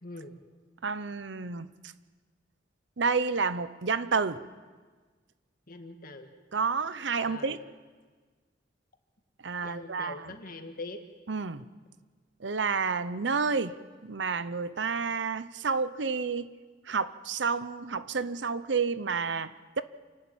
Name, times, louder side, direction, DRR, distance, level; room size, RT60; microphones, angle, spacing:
voice 1, 0.0-0.4 5.7-6.3 7.2-7.6 9.6-11.0, left 2 dB, 50° left, 5 dB, 1.9 m, -42 dB
voice 2, 0.8-1.7 3.0-4.4 6.5-7.6 9.4-10.3 11.3-11.6 12.4-13.8 14.0-16.5 16.9-19.8, right 5 dB, 75° right, 14 dB, 0.8 m, -30 dB
28.0 x 12.0 x 8.7 m, 1.4 s
head